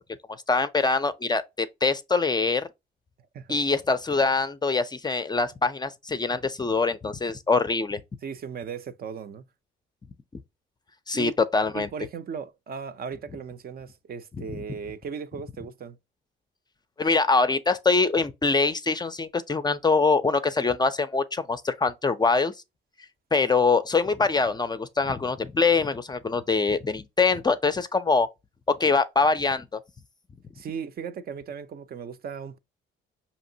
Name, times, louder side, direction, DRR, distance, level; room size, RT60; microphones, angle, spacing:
voice 1, 0.5-2.7 3.5-8.0 11.1-11.9 14.4-14.6 17.0-22.5 23.3-28.3 28.8-29.6, left 4 dB, 20° left, 0.4 m, -24 dB
voice 2, 8.2-9.5 11.1-11.3 11.7-16.0 30.5-32.6, right 6 dB, 50° right, 0.5 m, -37 dB
5.1 x 2.8 x 2.7 m
cardioid pair, 90°, 20 cm